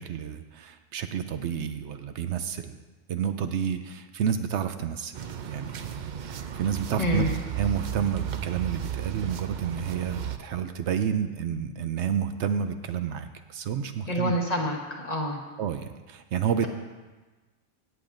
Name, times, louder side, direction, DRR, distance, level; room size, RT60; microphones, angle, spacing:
voice 1, 0.0-2.8 3.1-5.1 5.4-7.2 7.6-14.3 15.6-16.7, right 8 dB, 75° right, 9 dB, 0.9 m, -30 dB
sound 1, 5.1-10.4, right 10 dB, 55° right, 0.5 m, -34 dB
voice 2, 14.1-15.4, equal, 35° left, 0 dB, 1.3 m, -27 dB
16.0 x 8.8 x 2.6 m, 1.3 s
omnidirectional pair, 1.2 m